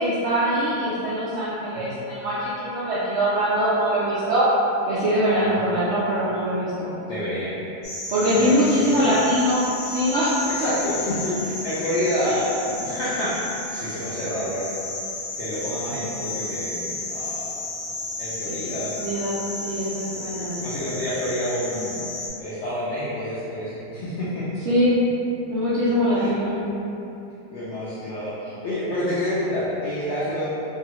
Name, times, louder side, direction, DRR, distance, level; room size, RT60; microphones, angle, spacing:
voice 1, 0.0-4.5 4.8-6.9 8.1-10.5 12.2-12.4 19.0-20.6 24.7-25.0 25.5-26.7, equal, 80° right, -11 dB, 0.6 m, -23 dB
voice 2, 5.4-5.7 7.1-7.6 8.3-9.2 10.6-14.8 15.4-17.5 18.2-18.9 20.3-22.0 22.4-24.4 26.1-26.6 27.5-30.5, left 1 dB, 80° left, -10 dB, 0.6 m, -28 dB
sound 1, 7.8-22.3, left 2 dB, 55° left, 1.0 m, -33 dB
2.7 x 2.3 x 2.9 m, 2.8 s
omnidirectional pair, 1.8 m